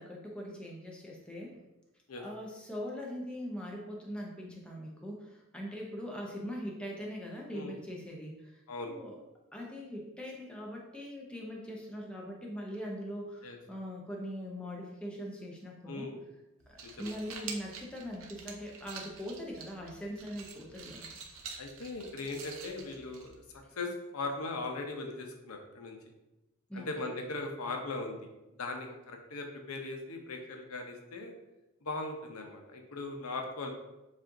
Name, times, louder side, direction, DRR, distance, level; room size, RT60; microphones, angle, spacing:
voice 1, 0.0-1.6 2.2-8.6 8.9-9.2 9.5-16.1 16.7-21.1 26.7-26.9, equal, 5° left, -2 dB, 0.6 m, -41 dB
voice 2, 15.9-16.2 16.8-17.1 21.6-23.3 23.8-26.0 26.7-28.3 28.6-31.3 31.8-33.7, left 2 dB, 85° left, 3 dB, 0.7 m, -39 dB
sound 1, 16.6-23.6, right 5 dB, 70° right, 0.6 m, -47 dB
7.3 x 2.5 x 2.6 m, 0.99 s
head